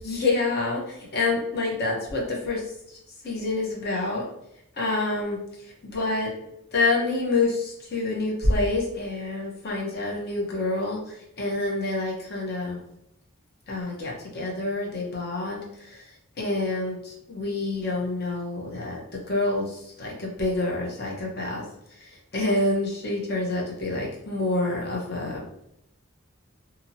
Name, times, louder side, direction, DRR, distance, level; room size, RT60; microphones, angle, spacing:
voice 1, 0.0-2.6 3.2-4.3 4.8-5.4 5.8-6.3 6.7-12.8 13.7-16.0 16.4-21.6 22.0-25.4, left 2 dB, 50° left, -2 dB, 0.8 m, -27 dB
2.7 x 2.7 x 2.7 m, 0.80 s
head